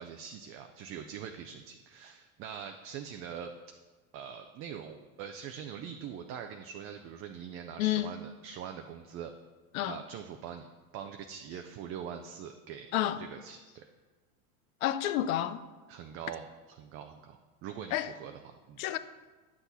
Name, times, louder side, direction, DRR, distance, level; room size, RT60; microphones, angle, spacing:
voice 1, 0.0-3.5 4.1-9.3 9.9-10.7 10.9-12.9 13.2-13.8 15.9-18.8, right 8 dB, 30° right, 0.4 m, -43 dB
voice 2, 7.8-8.1 9.7-10.0 12.9-13.2 14.8-15.6 17.9-18.1 18.8-19.0, left 13 dB, 70° left, 0.7 m, -30 dB
9.8 x 6.0 x 4.1 m
supercardioid pair, 120°, 43 cm